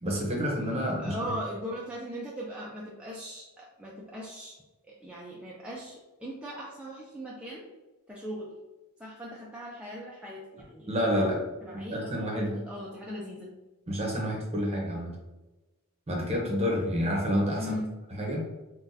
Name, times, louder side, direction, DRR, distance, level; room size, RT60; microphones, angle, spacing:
voice 1, 0.0-1.3 10.9-11.4 11.7-12.5 13.9-15.1 16.1-17.8 18.1-18.4, equal, 30° right, -1 dB, 0.8 m, -29 dB
voice 2, 1.0-4.5 4.9-7.7 8.1-8.5 9.0-10.9 11.2-13.5 17.6-17.9, equal, 5° right, -5 dB, 0.4 m, -39 dB
3.9 x 2.2 x 2.6 m, 1.1 s
head